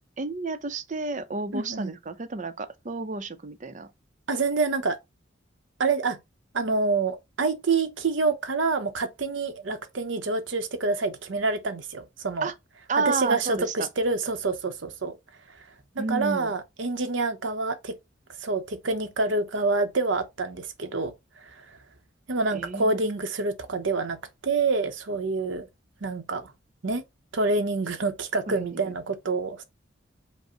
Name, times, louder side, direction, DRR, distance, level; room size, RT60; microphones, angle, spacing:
voice 1, 0.2-3.9 12.4-12.5 12.9-13.9 16.0-16.5 22.5-23.1 28.5-28.9, right 3 dB, 40° right, 0.6 m, -31 dB
voice 2, 1.5-1.9 4.3-5.0 5.8-6.2 6.5-12.5 13.1-15.2 15.9-17.9 18.4-21.1 21.4-21.6 22.3-24.2 24.4-25.7 26.0-26.5 26.8-27.0 27.3-29.6, right 3 dB, 70° right, 0.8 m, -27 dB
5.2 x 2.1 x 4.9 m
head